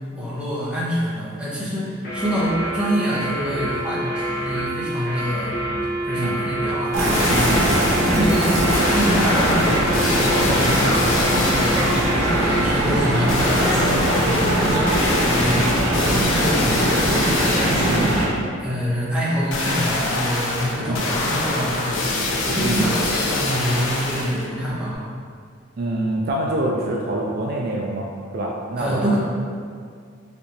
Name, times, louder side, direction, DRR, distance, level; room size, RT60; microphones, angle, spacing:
voice 1, 0.1-5.6 6.0-7.5 8.1-18.3 18.6-22.2 22.4-25.1 28.8-29.2, equal, 5° right, -8 dB, 0.7 m, -26 dB
sound 1, 2.0-12.8, right 1 dB, 55° left, 1.0 m, -27 dB
sound 2, 6.9-8.2 8.7-12.3 13.3-18.3 19.5-24.5 24.9-25.0, left 2 dB, 75° left, 0.5 m, -25 dB
sound 3, 6.9-18.3, right 1 dB, 90° right, 1.2 m, -21 dB
voice 2, 7.3-7.6 15.5-15.7 17.7-18.2 20.8-21.0 22.6-22.8 25.8-28.1 28.3-29.2, right 1 dB, 50° right, -2 dB, 0.3 m, -25 dB
4.3 x 2.8 x 2.6 m, 2.1 s
head